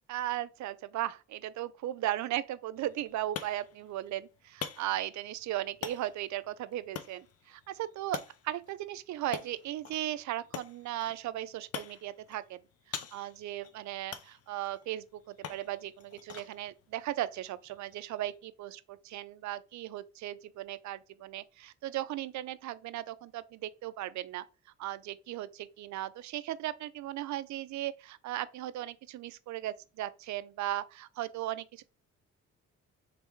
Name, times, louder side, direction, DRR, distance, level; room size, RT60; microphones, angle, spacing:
voice 1, 0.1-12.6 12.9-24.5 24.8-31.8, right 13 dB, 70° right, 0.5 m, -37 dB
sound 1, 2.8-18.4, left 8 dB, 50° left, 0.6 m, -47 dB
3.4 x 3.3 x 4.5 m
cardioid pair, 90°, 30 cm